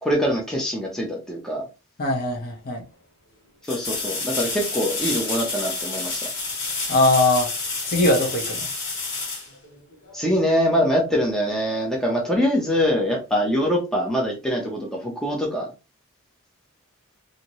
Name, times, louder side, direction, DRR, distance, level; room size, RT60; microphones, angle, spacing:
voice 1, 0.0-1.6 3.7-6.3 10.1-15.7, equal, ahead, 0.6 m, -23 dB
voice 2, 2.0-2.8 6.9-7.5 7.8-8.7, left 2 dB, 45° left, 0.9 m, -21 dB
sound 1, 2.3-2.4 3.6-10.2 13.1-13.2, left 3 dB, 60° left, 1.5 m, -29 dB
2.8 x 2.7 x 2.9 m
head